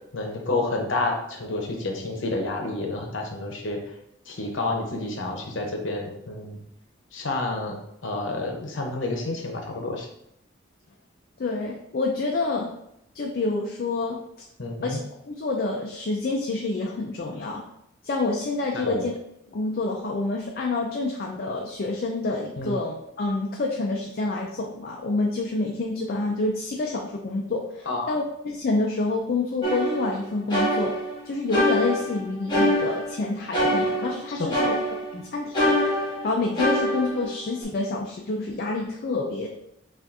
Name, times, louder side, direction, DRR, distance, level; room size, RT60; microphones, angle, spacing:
voice 1, 0.1-3.8 4.3-6.6 7.1-10.1 14.6-15.0 18.7-19.1 22.6-22.8 27.9-28.1 34.3-34.5 35.1-35.2, left 2 dB, 75° left, 2 dB, 0.8 m, -29 dB
voice 2, 11.4-12.7 13.1-14.2 14.8-15.0 15.3-17.6 18.0-19.1 19.5-30.9 31.3-34.7 35.3-35.8 36.2-39.5, left 3 dB, 50° left, 0 dB, 0.4 m, -27 dB
sound 1, 29.6-31.2 31.5-33.2 33.5-35.2 35.5-37.6, equal, 25° left, 1.2 m, -25 dB
5.8 x 2.5 x 2.6 m, 0.77 s
head